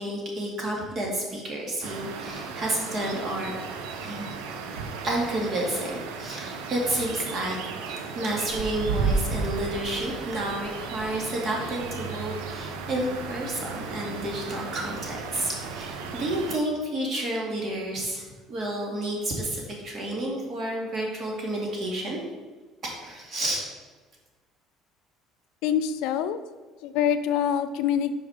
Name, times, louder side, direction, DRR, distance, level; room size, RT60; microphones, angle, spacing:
voice 1, 0.0-3.5 4.0-4.3 5.0-7.6 7.9-22.2 22.8-23.6, right 1 dB, 50° right, -1 dB, 2.1 m, -30 dB
sound 1, 1.8-16.6, right 4 dB, 80° right, 0.6 m, -34 dB
voice 2, 25.6-26.4 26.8-28.1, left 9 dB, 75° left, 11 dB, 0.4 m, -25 dB
5.1 x 5.0 x 4.9 m, 1.3 s
supercardioid pair, 80°, 0 cm